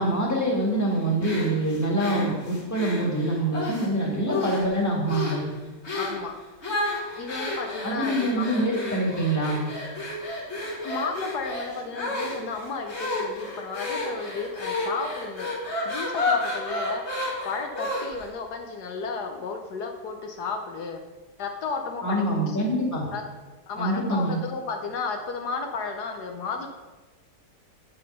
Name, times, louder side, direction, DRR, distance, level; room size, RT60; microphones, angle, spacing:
voice 1, 0.0-5.4 7.8-9.6 22.0-23.0 23.8-24.4, right 1 dB, 10° left, -2 dB, 1.7 m, -25 dB
sound 1, 1.2-3.9 4.3-4.8 5.1-5.4 5.8-6.2 6.6-18.3, left 2 dB, 40° left, 1.8 m, -31 dB
voice 2, 5.9-6.3 7.2-8.6 10.8-15.5 15.8-21.0 21.4-22.6 23.1-23.2 23.7-26.7, left 4 dB, 75° left, 4 dB, 1.3 m, -33 dB
7.7 x 6.4 x 5.4 m, 1.2 s
omnidirectional pair, 1.8 m